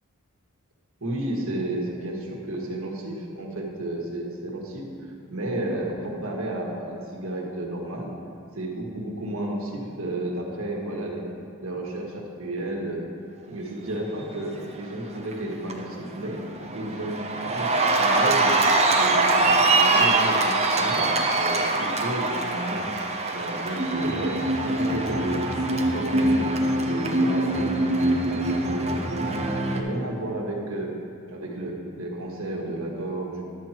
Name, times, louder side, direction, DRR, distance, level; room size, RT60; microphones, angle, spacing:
voice 1, 1.0-8.1 8.5-11.2 11.6-13.0 13.5-16.4 16.7-18.6 18.9-22.9 23.3-25.4 25.7-26.5 26.8-29.4 29.7-30.9 31.3-33.4, right 1 dB, 65° right, -1 dB, 1.6 m, -32 dB
Cheering, 14.9-15.3 15.7-29.8, right 2 dB, 30° right, 0.7 m, -23 dB
11.5 x 7.5 x 4.4 m, 2.4 s
head